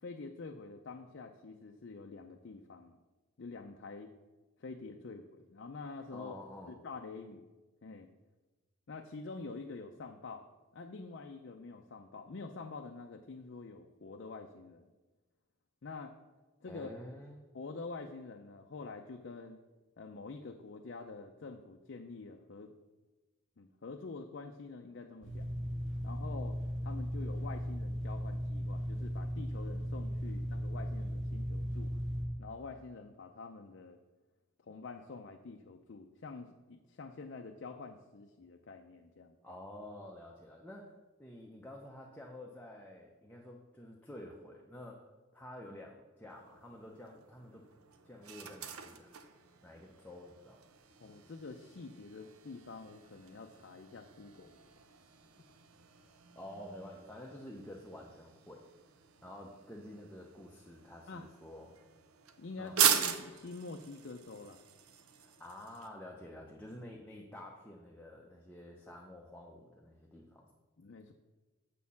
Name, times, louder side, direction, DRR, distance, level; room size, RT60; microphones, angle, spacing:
voice 1, 0.0-3.0 3.4-4.1 4.6-6.3 6.7-7.5 7.8-8.1 8.9-10.4 10.7-14.9 15.8-16.2 16.6-16.9 17.5-19.6 20.0-22.7 23.6-25.5 26.0-26.6 26.8-31.9 32.4-34.0 34.6-39.4 51.0-54.6 61.1-61.3 62.4-64.6 70.8-71.1, left 3 dB, 55° left, 3 dB, 0.5 m, -47 dB
voice 2, 6.1-6.7 16.7-17.4 39.4-40.9 41.2-47.6 48.0-49.1 49.6-50.6 56.4-58.6 59.2-61.8 62.6-62.8 65.2-70.5, left 1 dB, 10° left, -2 dB, 0.6 m, -49 dB
sound 1, 25.2-32.2, equal, 70° right, 2.5 m, -37 dB
sound 2, 46.3-65.9, right 8 dB, 90° right, 0.7 m, -40 dB
7.4 x 4.3 x 6.9 m, 1.2 s
head